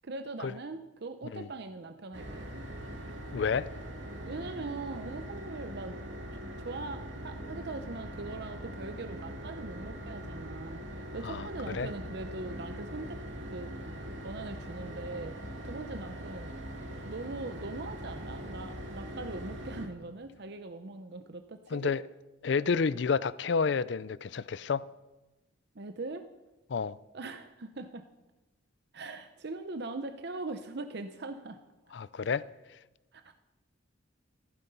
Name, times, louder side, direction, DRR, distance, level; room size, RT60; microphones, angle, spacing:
voice 1, 0.0-2.5 4.3-6.0 6.3-13.2 13.5-13.7 14.2-15.3 15.6-16.5 17.0-21.9 25.7-26.3 27.1-28.0 28.9-31.6 33.1-33.3, right 3 dB, 60° right, 0.8 m, -41 dB
sound 1, 2.1-19.9, equal, 75° right, 2.3 m, -42 dB
voice 2, 3.3-3.7 11.3-11.5 11.7-11.9 21.7-22.0 22.4-24.8 26.7-27.0 31.9-32.4, left 5 dB, 65° left, 0.4 m, -29 dB
15.0 x 14.5 x 5.5 m
head